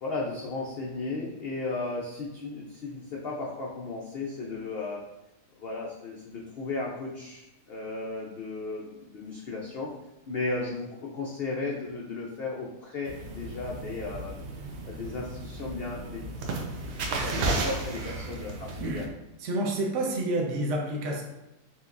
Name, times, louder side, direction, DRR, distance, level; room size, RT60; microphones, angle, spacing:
voice 1, 0.0-5.0 5.6-9.9 10.3-14.3 14.9-16.2 17.2-19.0, left 3 dB, 85° left, -2 dB, 0.5 m, -35 dB
sound 1, 13.0-19.1, right 2 dB, 85° right, 1.3 m, -34 dB
voice 2, 17.0-17.6 18.8-19.0 19.4-21.2, right 1 dB, 55° right, -1 dB, 0.9 m, -30 dB
5.7 x 2.8 x 2.5 m, 0.93 s
omnidirectional pair, 1.7 m